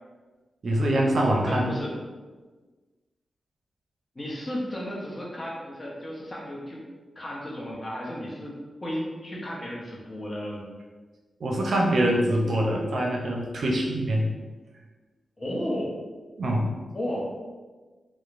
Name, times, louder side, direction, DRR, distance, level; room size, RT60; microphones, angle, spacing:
voice 1, 0.6-1.8 11.4-14.3 16.4-16.7, right 1 dB, 70° right, -1 dB, 0.5 m, -24 dB
voice 2, 1.5-1.9 4.1-6.9 7.2-10.6 15.4-16.0 16.9-17.3, equal, 35° left, -3 dB, 0.8 m, -34 dB
2.9 x 2.0 x 2.5 m, 1.3 s
supercardioid pair, 45°, 0 cm